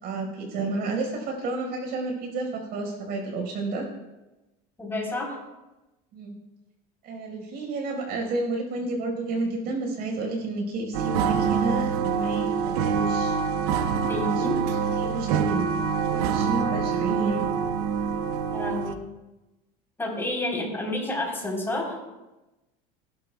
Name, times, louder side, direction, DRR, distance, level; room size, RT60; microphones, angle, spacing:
voice 1, 0.0-3.9 6.1-6.4 7.0-13.4 14.4-14.5 15.0-15.6 16.1-17.4, right 3 dB, 50° right, 1 dB, 5.0 m, -31 dB
voice 2, 4.8-5.4 14.1-14.6 18.5-19.0 20.0-22.0, left 1 dB, 10° left, -2 dB, 3.9 m, -29 dB
sound 1, 10.9-18.9, right 6 dB, 85° right, 0.8 m, -25 dB
18.5 x 12.0 x 2.3 m, 1.0 s
supercardioid pair, 120°, 19 cm